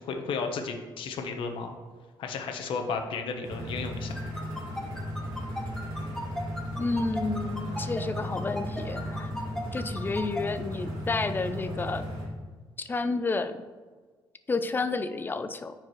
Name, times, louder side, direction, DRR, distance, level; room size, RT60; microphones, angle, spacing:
voice 1, 0.0-1.8 2.2-4.2, left 5 dB, 75° left, 4 dB, 1.0 m, -33 dB
sound 1, 3.4-12.3, equal, 80° right, 2.4 m, -35 dB
sound 2, 4.1-10.4, left 1 dB, 5° left, 1.0 m, -36 dB
voice 2, 6.8-9.3 9.7-12.1 12.8-13.6 14.5-15.7, left 3 dB, 25° left, 10 dB, 0.5 m, -30 dB
14.0 x 4.7 x 3.2 m, 1.4 s
cardioid pair, 120°, 9 cm